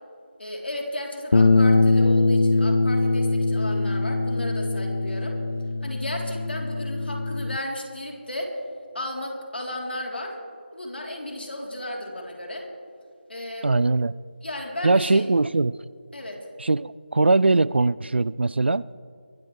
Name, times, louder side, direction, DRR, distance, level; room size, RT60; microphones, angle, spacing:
voice 1, 0.4-5.4 5.8-8.5 8.9-10.4 10.7-12.7 13.3-13.7 14.4-15.3 16.1-16.5, left 1 dB, 65° left, 0 dB, 3.6 m, -34 dB
sound 1, 1.3-7.6, left 3 dB, 85° left, 0.5 m, -22 dB
voice 2, 13.6-14.2 14.8-15.8 16.6-18.9, right 3 dB, 70° right, 20 dB, 0.4 m, -21 dB
23.0 x 13.5 x 3.3 m, 2.2 s
figure-of-eight pair, 175°, 6 cm